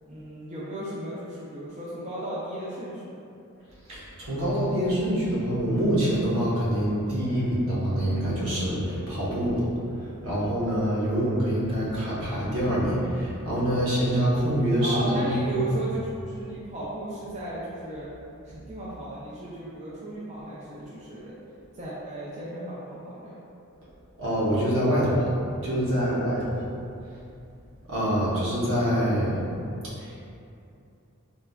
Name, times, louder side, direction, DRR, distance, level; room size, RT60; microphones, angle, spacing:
voice 1, 0.1-3.2 14.8-18.1 18.5-21.3 21.7-23.3, right 1 dB, 30° right, -9 dB, 0.3 m, -35 dB
voice 2, 3.9-9.6 9.9-15.6 24.2-26.6 27.9-29.4 30.0-30.2, equal, 70° right, -8 dB, 0.9 m, -25 dB
3.8 x 2.3 x 2.3 m, 2.6 s
head